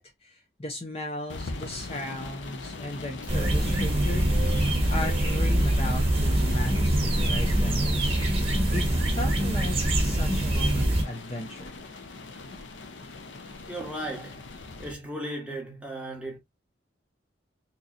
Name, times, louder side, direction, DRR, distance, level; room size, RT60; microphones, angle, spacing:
voice 1, 0.0-8.4 8.7-11.7, left 1 dB, 30° left, 0.6 m, -37 dB
sound 1, 1.3-14.9, left 2 dB, 75° left, 0.6 m, -39 dB
sound 2, 3.3-11.0, right 1 dB, 30° right, 1.2 m, -24 dB
voice 2, 13.7-14.4 14.8-16.4, right 1 dB, 5° right, 1.1 m, -36 dB
4.0 x 3.0 x 2.4 m
head